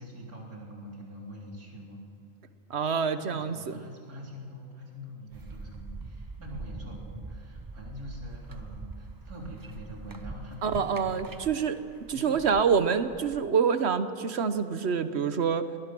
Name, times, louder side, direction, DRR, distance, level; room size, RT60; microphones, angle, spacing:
voice 1, 0.0-2.0 3.1-11.5 12.1-12.4, equal, 90° right, -1 dB, 3.9 m, -44 dB
voice 2, 2.7-3.7 10.6-11.8 12.1-15.7, right 6 dB, 50° right, 11 dB, 1.1 m, -26 dB
sound 1, 5.3-13.4, right 3 dB, 25° right, 0.5 m, -44 dB
23.0 x 19.5 x 6.1 m, 2.4 s
omnidirectional pair, 1.5 m